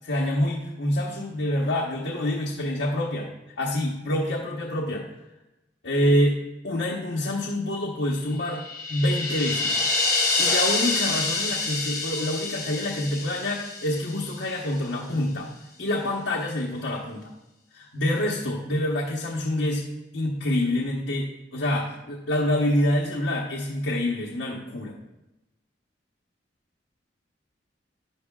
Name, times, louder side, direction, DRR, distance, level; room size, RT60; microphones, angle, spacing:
voice 1, 0.1-3.3 3.6-5.0 5.8-6.4 6.6-8.6 8.9-9.8 10.4-15.5 15.8-17.3 17.7-19.9 20.1-24.9, left 1 dB, 80° left, -3 dB, 1.2 m, -26 dB
sound 1, 8.4-14.6, left 3 dB, 20° left, 2.6 m, -27 dB
11.0 x 11.0 x 2.4 m, 1.0 s
head